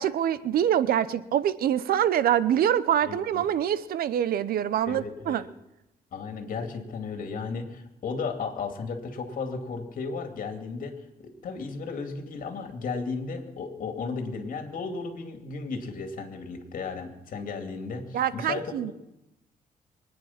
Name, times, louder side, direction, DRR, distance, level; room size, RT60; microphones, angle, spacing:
voice 1, 0.0-5.4 18.1-18.9, right 10 dB, 75° right, 16 dB, 0.8 m, -25 dB
voice 2, 3.0-3.4 4.9-5.4 6.1-18.9, left 4 dB, 60° left, 5 dB, 2.5 m, -35 dB
23.5 x 9.7 x 5.8 m, 0.91 s
cardioid pair, 110°, 16 cm